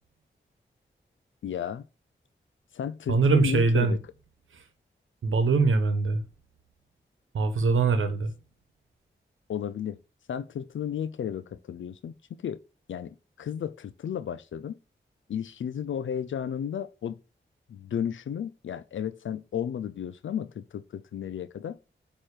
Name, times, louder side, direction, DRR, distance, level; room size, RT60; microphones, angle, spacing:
voice 1, 1.4-1.8 2.7-4.0 9.5-10.0 10.3-12.1 12.4-12.6 12.9-14.7 15.3-17.2 17.7-21.8, left 8 dB, 75° left, 0.4 m, -33 dB
voice 2, 3.1-4.0 4.5-4.6 5.2-6.2 7.3-8.3, right 4 dB, 85° right, 1.1 m, -23 dB
8.4 x 3.1 x 4.8 m
cardioid pair, 40°, 20 cm